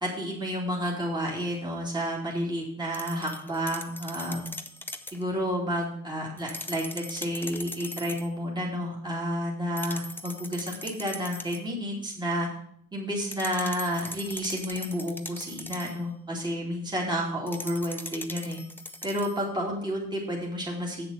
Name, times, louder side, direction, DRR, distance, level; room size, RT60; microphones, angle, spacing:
voice 1, 0.0-4.5 5.1-12.5 12.9-18.6 19.0-21.1, equal, 15° right, -3 dB, 2.6 m, -31 dB
sound 1, 2.9-5.2 6.4-8.3 9.8-11.7 13.3-16.0 17.5-19.4, left 2 dB, 5° left, 0.7 m, -40 dB
7.9 x 6.9 x 5.6 m, 0.67 s
cardioid pair, 90°, 30 cm